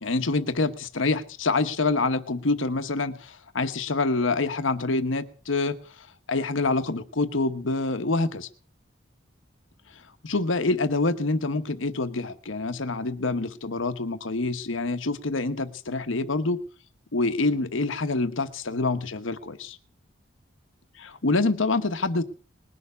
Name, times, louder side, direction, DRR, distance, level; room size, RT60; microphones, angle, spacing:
voice 1, 0.0-8.5 10.2-16.6 17.1-19.8 21.0-22.2, left 3 dB, 75° left, 9 dB, 1.1 m, -26 dB
20.5 x 6.9 x 8.3 m, 0.42 s
head